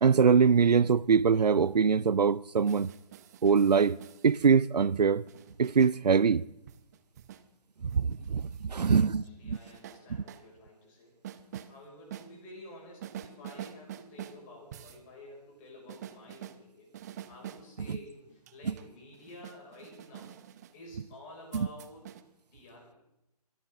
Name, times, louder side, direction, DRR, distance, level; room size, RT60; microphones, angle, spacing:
voice 1, 0.0-2.9 3.4-4.0 4.2-5.3 5.6-6.4 7.8-9.6 17.9-18.0 18.7-18.8 21.5-21.7, right 6 dB, 80° right, 0.5 m, -23 dB
sound 1, 2.6-4.5 5.3-5.9 6.7-7.4 7.9-9.0 9.5-10.4 11.2-11.7 12.1-12.3 13.0-14.4 14.7-15.0 15.9-16.6 16.9-17.7 18.2-20.7 21.5-22.2, right 11 dB, 25° right, 0.7 m, -46 dB
voice 2, 8.8-11.2 11.6-16.9 17.3-20.3 20.7-22.1 22.5-23.0, left 1 dB, 25° left, 5.6 m, -51 dB
23.5 x 12.5 x 3.7 m
figure-of-eight pair, 145°, 20 cm